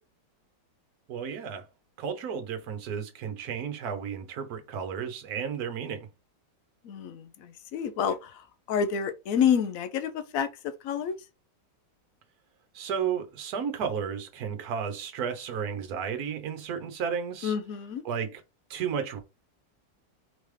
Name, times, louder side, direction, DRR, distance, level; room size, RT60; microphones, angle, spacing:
voice 1, 1.1-1.6 2.0-6.1 12.7-17.5 18.0-18.4 18.7-19.2, right 7 dB, 60° right, 1.3 m, -33 dB
voice 2, 6.8-11.2 17.4-18.0, left 7 dB, 65° left, 0.9 m, -29 dB
3.9 x 3.5 x 3.2 m
omnidirectional pair, 1.9 m